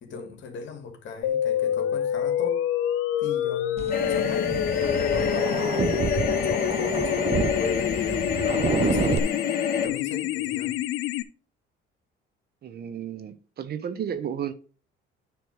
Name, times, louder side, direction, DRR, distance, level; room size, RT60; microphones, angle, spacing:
voice 1, 0.0-2.6 3.2-9.3 9.7-10.8, left 5 dB, 60° left, 2.2 m, -38 dB
sound 1, 1.2-11.2, left 11 dB, 85° left, 0.6 m, -28 dB
sound 2, 3.8-9.2, right 7 dB, 30° right, 0.5 m, -29 dB
sound 3, 3.9-9.9, left 7 dB, 40° left, 1.5 m, -28 dB
voice 2, 12.6-14.5, right 8 dB, 50° right, 0.9 m, -33 dB
9.3 x 3.3 x 6.4 m
cardioid pair, 105°, 21 cm